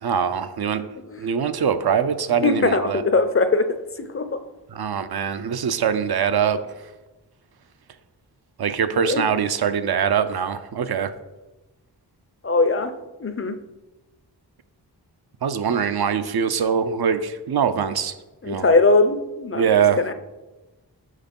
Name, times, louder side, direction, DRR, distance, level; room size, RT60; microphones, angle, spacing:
voice 1, 0.0-0.9 1.2-3.0 4.7-6.6 8.6-11.1 15.4-18.1 18.5-18.7 19.5-20.0, right 7 dB, 65° right, 10 dB, 0.7 m, -23 dB
voice 2, 2.4-3.7 4.0-4.4 8.9-9.2 12.4-13.6 18.4-20.1, left 3 dB, 35° left, 10 dB, 0.6 m, -21 dB
6.5 x 5.1 x 5.3 m, 1.1 s
wide cardioid pair, 75°, 41 cm